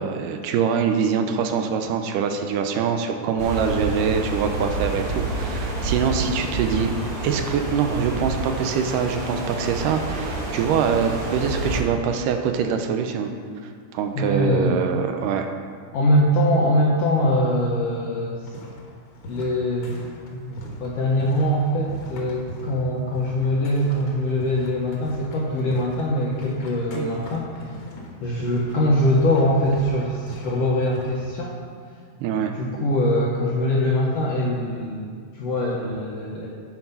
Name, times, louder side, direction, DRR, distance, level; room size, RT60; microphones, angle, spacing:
voice 1, 0.0-6.9 7.2-13.3 13.9-15.5 26.9-27.1 32.2-32.6, right 6 dB, 85° right, 6 dB, 2.2 m, -24 dB
sound 1, 3.4-11.8, right 2 dB, 55° right, 0.9 m, -28 dB
voice 2, 14.1-14.8 15.9-18.4 19.3-20.0 20.3-27.5 28.2-31.6 32.5-36.5, equal, 75° left, -3 dB, 1.5 m, -22 dB
sound 2, 18.4-31.1, left 1 dB, 60° left, 1.4 m, -40 dB
9.7 x 4.6 x 5.4 m, 2.1 s
omnidirectional pair, 3.7 m